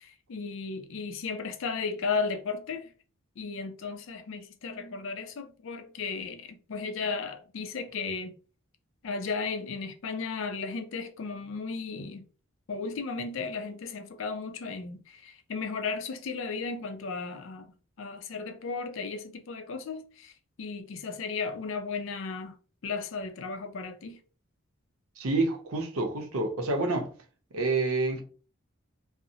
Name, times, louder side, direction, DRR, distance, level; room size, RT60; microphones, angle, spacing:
voice 1, 0.0-2.9 3.4-8.3 9.0-12.2 12.7-17.7 18.0-20.3 20.6-22.5 22.8-24.2, left 4 dB, 65° left, 0.4 m, -35 dB
voice 2, 25.2-27.1 27.5-28.2, right 3 dB, 85° right, 0.6 m, -28 dB
2.6 x 2.0 x 2.6 m
head